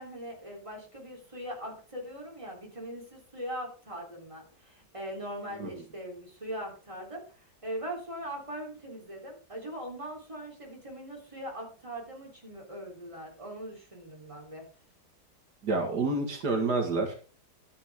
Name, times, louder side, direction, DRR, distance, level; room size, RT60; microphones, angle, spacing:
voice 1, 0.0-14.7, equal, 15° right, 0 dB, 3.6 m, -41 dB
voice 2, 15.6-17.3, right 3 dB, 70° right, 3 dB, 2.4 m, -28 dB
12.5 x 9.7 x 3.6 m, 0.37 s
omnidirectional pair, 1.8 m